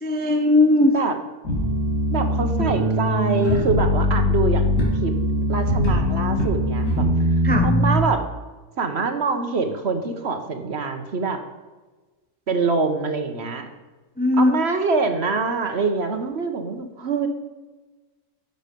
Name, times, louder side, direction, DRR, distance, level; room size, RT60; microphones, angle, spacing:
voice 1, 0.0-0.9 7.4-7.7 14.2-14.5, left 2 dB, 10° left, 4 dB, 0.4 m, -18 dB
sound 1, 1.4-8.0, equal, 70° left, 3.3 m, -21 dB
voice 2, 2.1-5.1 5.5-7.0 7.6-8.2 8.8-11.4 12.5-13.7 14.4-17.3, right 4 dB, 45° right, 6 dB, 1.2 m, -24 dB
11.0 x 6.7 x 5.2 m, 1.2 s
omnidirectional pair, 1.6 m